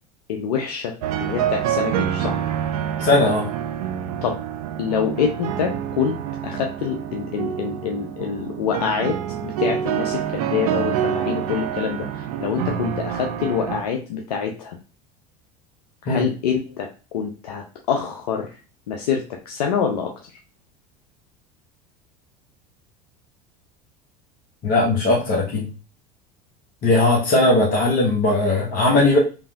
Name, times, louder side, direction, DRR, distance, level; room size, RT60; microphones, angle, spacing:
voice 1, 0.3-2.4 4.2-4.4 4.8-14.8 16.0-18.5 18.9-20.1, left 7 dB, 80° left, 3 dB, 0.5 m, -26 dB
sound 1, 1.0-13.8, right 10 dB, 70° right, 0.4 m, -27 dB
voice 2, 3.0-3.5 16.1-16.3 24.6-25.7 26.8-29.2, left 2 dB, 45° left, -3 dB, 0.9 m, -18 dB
3.2 x 2.5 x 2.3 m, 0.34 s
hypercardioid pair, 80°, 20 cm